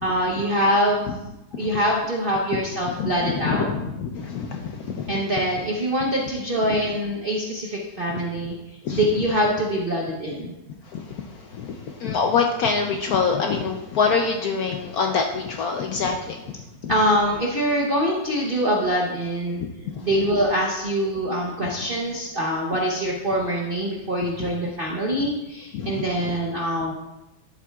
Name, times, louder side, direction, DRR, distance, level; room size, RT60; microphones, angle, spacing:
voice 1, 0.0-3.7 5.1-8.6 8.9-10.5 16.9-19.6 20.0-26.9, equal, 50° right, -2 dB, 0.6 m, -24 dB
voice 2, 3.0-5.2 8.8-9.0 10.9-11.2 11.5-16.4 16.8-16.9 21.6-21.7 24.4-24.5 25.7-26.1, left 5 dB, 70° left, 3 dB, 0.9 m, -25 dB
10.5 x 7.6 x 2.3 m, 0.95 s
omnidirectional pair, 2.1 m